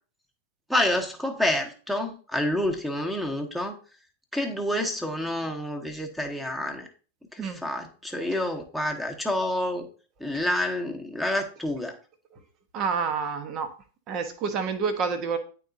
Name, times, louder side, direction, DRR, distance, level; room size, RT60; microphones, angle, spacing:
voice 1, 0.7-3.7 4.3-6.9 7.3-9.9 10.2-12.0, left 1 dB, ahead, 5 dB, 1.2 m, -28 dB
voice 2, 12.7-13.7 14.1-15.4, right 5 dB, 35° right, 8 dB, 1.0 m, -28 dB
10.5 x 3.8 x 2.7 m, 0.38 s
figure-of-eight pair, 90°, 0 cm